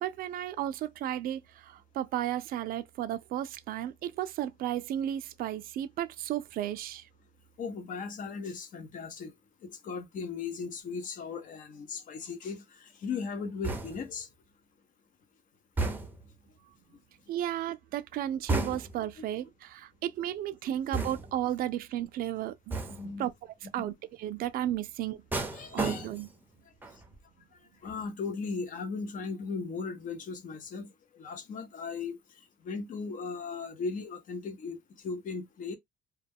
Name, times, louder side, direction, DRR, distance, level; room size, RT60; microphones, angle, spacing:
voice 1, 0.0-7.0 17.3-22.8 23.0-23.3 23.6-25.2 25.7-26.3, right 12 dB, 60° right, 0.4 m, -34 dB
voice 2, 7.6-9.3 9.6-12.6 13.0-14.3 22.9-23.3 23.8-23.9 25.5-26.1 27.8-30.9 31.2-32.2 32.6-34.8 35.0-35.8, left 5 dB, 50° left, 0.7 m, -37 dB
sound 1, 13.6-14.2 15.8-16.3 18.5-19.1 20.9-21.5 22.7-23.2 25.3-26.4 26.8-27.2, right 3 dB, 10° right, 0.6 m, -33 dB
2.2 x 2.2 x 3.4 m
cardioid pair, 110°, 17 cm